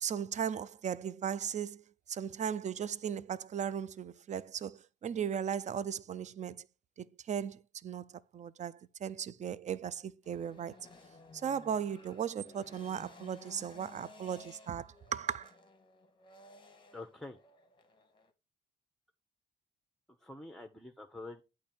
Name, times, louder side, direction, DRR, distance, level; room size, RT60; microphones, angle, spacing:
voice 1, 0.0-1.8 2.1-6.7 7.0-10.8 11.4-15.5, right 8 dB, 35° right, 0.4 m, -37 dB
sound 1, 10.2-18.3, left 3 dB, 25° left, 1.0 m, -57 dB
voice 2, 16.9-17.4 20.2-21.4, left 2 dB, ahead, 0.8 m, -46 dB
8.5 x 3.1 x 4.2 m
cardioid pair, 90°, 20 cm